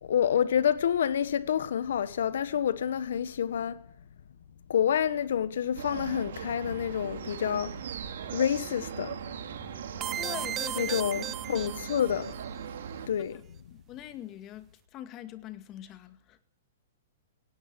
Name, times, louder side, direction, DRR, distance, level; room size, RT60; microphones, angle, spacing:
voice 1, 0.0-3.8 4.7-7.7 8.3-9.2 10.8-12.3 13.1-13.4, left 9 dB, 75° left, 1.5 m, -28 dB
sound 1, 5.8-13.1, right 8 dB, 70° right, 4.1 m, -39 dB
sound 2, 10.0-12.3, right 11 dB, 20° right, 0.8 m, -35 dB
voice 2, 10.1-11.0 11.2-11.7 13.3-13.4 13.7-16.4, left 12 dB, 30° left, 2.0 m, -43 dB
18.5 x 17.0 x 9.9 m
hypercardioid pair, 145°, 0 cm